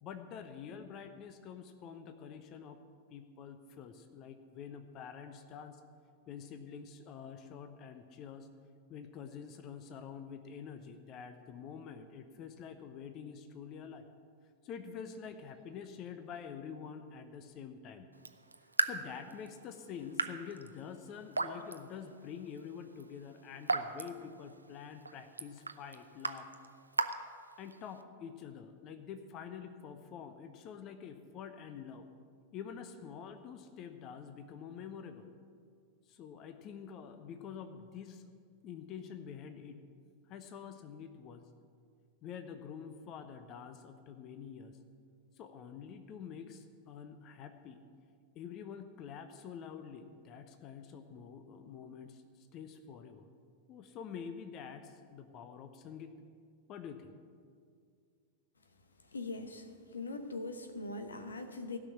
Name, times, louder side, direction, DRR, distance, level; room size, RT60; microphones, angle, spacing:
voice 1, 0.0-2.8 3.1-5.8 6.3-8.5 8.9-14.0 14.6-18.1 18.8-26.5 27.6-32.1 32.5-35.3 36.1-38.3 38.6-39.8 40.3-41.5 42.2-44.8 45.3-47.8 48.3-53.3 53.7-56.1 56.7-57.1, left 7 dB, 35° left, 8 dB, 0.8 m, -47 dB
Raindrop / Drip, 18.1-28.0, right 3 dB, 80° right, 0.6 m, -39 dB
voice 2, 59.1-61.8, left 3 dB, 75° left, 8 dB, 1.0 m, -41 dB
16.5 x 6.0 x 8.6 m, 2.1 s
figure-of-eight pair, 90°, 0 cm